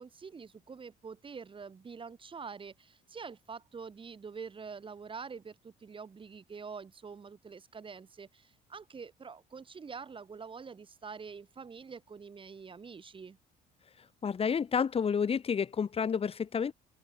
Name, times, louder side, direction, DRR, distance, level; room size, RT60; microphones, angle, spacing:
voice 1, 0.0-13.4, right 5 dB, 30° right, 6.4 m, -46 dB
voice 2, 14.2-16.7, left 6 dB, 35° left, 2.1 m, -30 dB
open air
cardioid pair, 110°, 17 cm